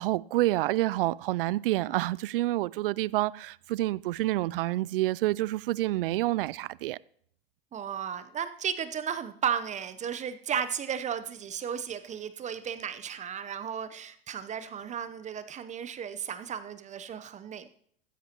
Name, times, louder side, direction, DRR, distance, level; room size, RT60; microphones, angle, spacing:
voice 1, 0.0-7.0, right 17 dB, 65° right, 0.5 m, -28 dB
voice 2, 7.7-17.7, right 8 dB, 25° right, 0.8 m, -34 dB
15.0 x 13.5 x 2.9 m
hypercardioid pair, 95°, 30 cm